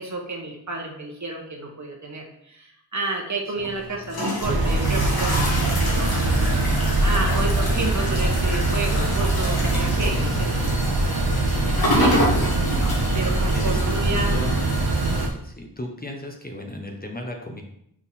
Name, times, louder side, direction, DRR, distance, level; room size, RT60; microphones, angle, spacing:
voice 1, 0.0-5.5 5.8-6.7 7.0-10.6 11.3-11.5 11.9-12.5 13.1-14.4, right 3 dB, 45° right, 0 dB, 1.5 m, -30 dB
sound 1, 3.6-15.3, left 1 dB, 60° left, 1.9 m, -29 dB
sound 2, 4.4-15.3, right 2 dB, 65° right, 0.9 m, -22 dB
voice 2, 14.3-14.7 15.4-17.6, left 1 dB, 20° left, 2 dB, 0.9 m, -35 dB
5.9 x 4.0 x 4.1 m, 0.72 s
cardioid pair, 60°, 41 cm